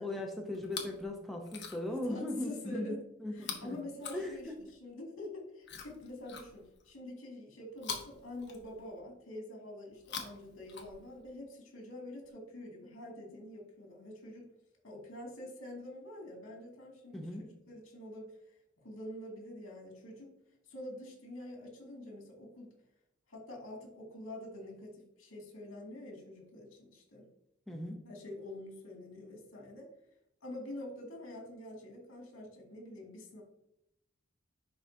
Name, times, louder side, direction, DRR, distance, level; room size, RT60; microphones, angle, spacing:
voice 1, 0.0-3.8 4.1-4.5 17.1-17.5 27.7-28.0, left 1 dB, ahead, 0 dB, 0.7 m, -38 dB
Chewing mastication, 0.5-1.0 1.4-2.0 3.4-4.8 5.6-6.9 7.8-9.0 9.9-11.3 12.2-12.3, left 6 dB, 55° left, 1.1 m, -45 dB
voice 2, 2.1-3.0 3.3-4.5 4.8-14.5 14.8-18.3 18.8-20.3 20.7-22.7 23.3-27.3 28.0-29.9 30.4-33.4, left 1 dB, 75° left, 0 dB, 2.5 m, -46 dB
10.5 x 3.8 x 2.7 m, 0.81 s
head